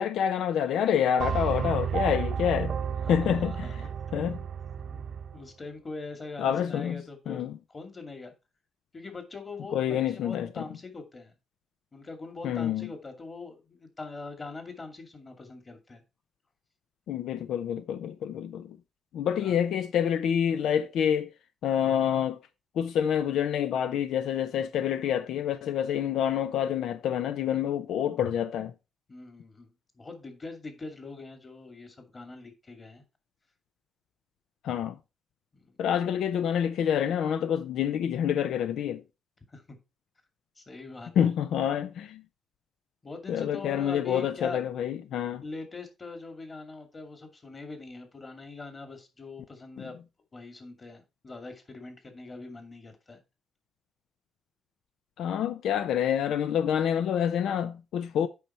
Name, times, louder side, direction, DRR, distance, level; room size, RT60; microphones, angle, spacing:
voice 1, 0.0-2.8 3.1-3.8 4.1-4.4 6.4-7.6 9.7-10.7 12.4-12.9 17.1-18.8 19.1-21.3 21.6-22.4 22.7-28.7 34.6-35.0 35.8-39.0 41.2-42.2 43.3-45.4 49.8-49.9 55.2-58.3, left 9 dB, 85° left, 0.6 m, -27 dB
sound 1, 1.2-5.4, right 7 dB, 55° right, 0.7 m, -32 dB
voice 2, 3.0-3.7 4.8-5.0 5.3-8.3 8.9-11.3 11.9-16.0 19.4-19.7 29.1-33.0 35.5-35.8 39.5-39.8 40.6-41.1 43.0-44.6 45.4-50.0 50.3-53.2, left 3 dB, 30° left, 2.4 m, -42 dB
8.5 x 5.6 x 4.4 m
cardioid pair, 115°, 0 cm